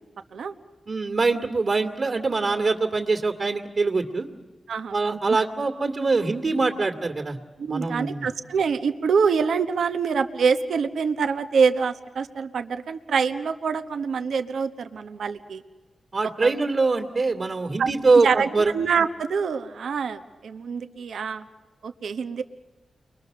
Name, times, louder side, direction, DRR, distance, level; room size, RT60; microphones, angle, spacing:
voice 1, 0.9-4.3 4.9-7.4 7.7-8.3 16.1-18.7, right 3 dB, 50° right, 2 dB, 2.3 m, -23 dB
voice 2, 4.7-5.4 7.6-15.6 16.4-16.5 17.8-17.9 18.2-21.4 21.8-22.4, right 5 dB, 80° right, 8 dB, 1.1 m, -25 dB
29.5 x 22.5 x 6.7 m, 1.3 s
cardioid pair, 65°, 0 cm